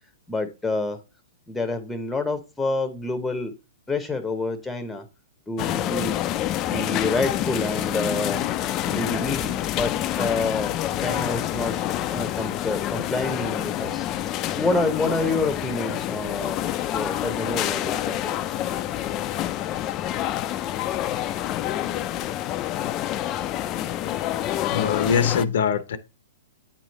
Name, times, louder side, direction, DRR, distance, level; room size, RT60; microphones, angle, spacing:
voice 1, 0.3-1.0 1.5-3.5 3.9-5.0 5.5-6.2 6.6-11.8 12.1-16.6 16.9-18.3, left 2 dB, 5° left, 0.8 m, -28 dB
sound 1, 5.6-25.4, left 12 dB, 30° left, 0.4 m, -27 dB
voice 2, 24.7-26.0, left 7 dB, 70° left, 0.6 m, -22 dB
8.7 x 3.1 x 4.1 m
hypercardioid pair, 130°, 0 cm